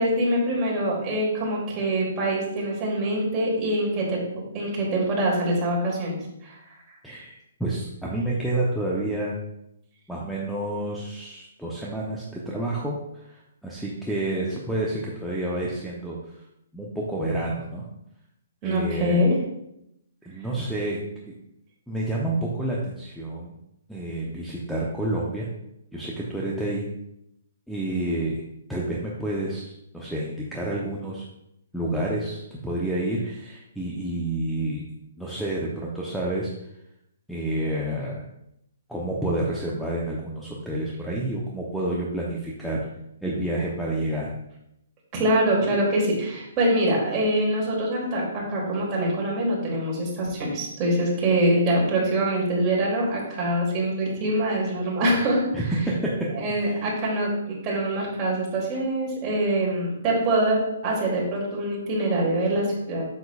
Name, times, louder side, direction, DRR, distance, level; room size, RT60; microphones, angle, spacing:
voice 1, 0.0-4.2 4.5-6.6 18.6-19.4 45.1-55.5 56.3-63.0, right 1 dB, 25° right, -4 dB, 2.9 m, -24 dB
voice 2, 7.0-9.4 10.1-16.3 16.7-17.8 18.6-19.3 20.3-21.0 21.9-23.5 23.9-25.5 25.9-26.8 27.7-28.4 28.7-31.2 31.7-34.8 35.2-36.5 37.3-38.2 38.9-42.8 43.2-44.3 55.5-56.1 56.6-56.8, right 1 dB, ahead, -6 dB, 0.9 m, -29 dB
7.8 x 6.9 x 2.5 m, 0.81 s
hypercardioid pair, 140°, 0 cm